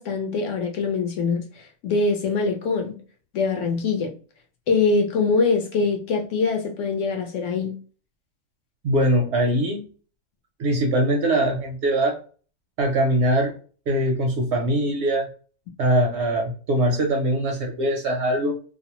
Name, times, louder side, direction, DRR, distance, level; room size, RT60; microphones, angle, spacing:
voice 1, 0.0-2.9 3.3-4.1 4.7-7.7, left 4 dB, 70° left, 3 dB, 0.9 m, -23 dB
voice 2, 8.8-9.8 10.6-12.2 12.8-13.6 13.9-15.3 15.8-18.5, right 1 dB, 65° right, 2 dB, 0.7 m, -22 dB
2.5 x 2.0 x 2.9 m, 0.40 s
omnidirectional pair, 1.5 m